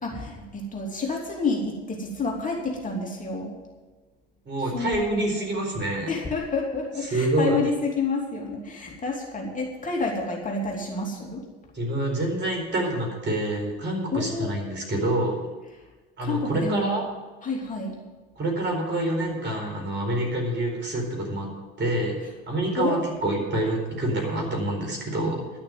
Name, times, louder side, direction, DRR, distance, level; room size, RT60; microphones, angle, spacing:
voice 1, 0.0-3.6 4.7-5.5 6.1-11.4 14.1-14.5 16.2-16.9 17.4-18.0 22.7-23.0, left 3 dB, 25° left, -1 dB, 3.0 m, -29 dB
voice 2, 4.5-6.1 7.1-7.6 11.7-15.4 16.2-17.0 18.4-21.5 21.8-22.2 22.5-25.4, right 1 dB, 40° right, 1 dB, 4.5 m, -26 dB
11.5 x 6.5 x 9.2 m, 1.2 s
supercardioid pair, 80°, 29 cm